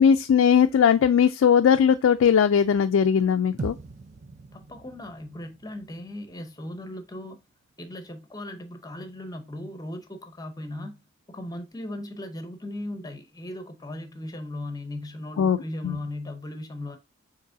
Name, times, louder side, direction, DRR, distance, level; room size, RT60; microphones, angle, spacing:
voice 1, 0.0-3.8 15.4-15.6 15.8-16.0, left 7 dB, 70° left, 0.3 m, -19 dB
sound 1, 3.6-7.9, right 3 dB, 35° right, 0.4 m, -42 dB
voice 2, 4.5-7.4 7.8-11.0 11.3-17.0, left 1 dB, 20° left, 0.6 m, -37 dB
6.5 x 3.1 x 2.6 m
head